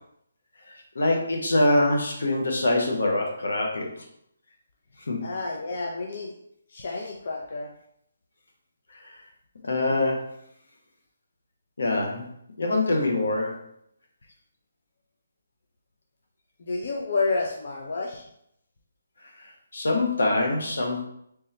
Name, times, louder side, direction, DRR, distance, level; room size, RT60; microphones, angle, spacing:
voice 1, 0.7-4.0 5.0-5.2 8.9-9.0 9.6-10.3 11.8-12.2 12.6-13.6 19.4-19.5 19.7-21.0, left 2 dB, 80° left, 1 dB, 1.0 m, -24 dB
voice 2, 5.2-6.3 6.7-7.7 16.6-18.2, left 3 dB, 55° left, -1 dB, 0.6 m, -29 dB
3.5 x 2.9 x 3.2 m, 0.74 s
hypercardioid pair, 160°, 0 cm